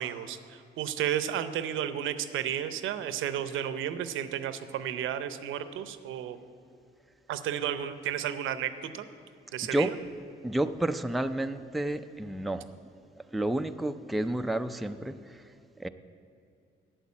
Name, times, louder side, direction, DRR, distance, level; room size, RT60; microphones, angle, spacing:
voice 1, 0.0-6.4 7.3-9.1 9.5-10.0, right 10 dB, 85° right, 11 dB, 0.7 m, -32 dB
voice 2, 10.4-12.6 13.3-15.1 15.8-15.9, right 1 dB, ahead, 8 dB, 0.4 m, -30 dB
8.1 x 7.9 x 8.5 m, 2.4 s
cardioid pair, 90°, 20 cm